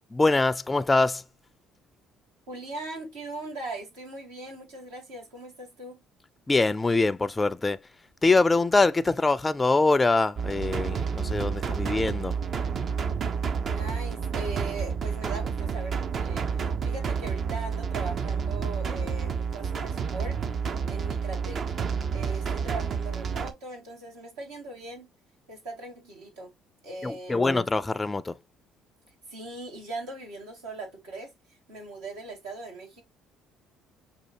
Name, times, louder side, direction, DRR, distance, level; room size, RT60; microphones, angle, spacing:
voice 1, 0.1-1.2 6.5-7.8 8.2-12.4 27.0-28.3, left 3 dB, 20° left, 0.4 m, -23 dB
voice 2, 2.5-6.0 13.7-20.4 20.9-21.6 22.1-25.1 25.5-26.5 26.8-27.6 29.3-33.0, right 2 dB, 85° right, 2.1 m, -40 dB
sound 1, 10.4-23.5, right 6 dB, 50° right, 0.6 m, -30 dB
6.2 x 2.3 x 2.8 m
hypercardioid pair, 60°, 0 cm